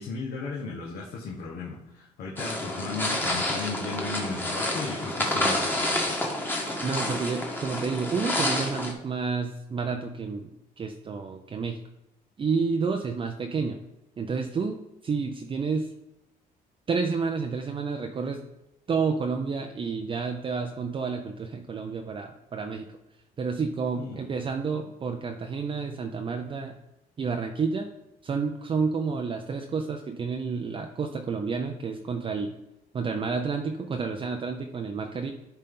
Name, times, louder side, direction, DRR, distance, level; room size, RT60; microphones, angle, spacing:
voice 1, 0.0-6.2 24.0-24.2 24.8-24.9, left 4 dB, 70° left, -4 dB, 1.5 m, -36 dB
sound 1, 2.4-8.9, left 1 dB, 10° left, 1.5 m, -29 dB
voice 2, 6.8-11.8 12.4-13.8 14.2-15.9 16.9-18.4 18.9-22.9 23.4-26.7 27.2-27.9 28.2-32.5 32.9-35.3, right 5 dB, 30° right, 4 dB, 0.6 m, -30 dB
11.5 x 4.1 x 3.8 m, 0.87 s
cardioid pair, 110°, 17 cm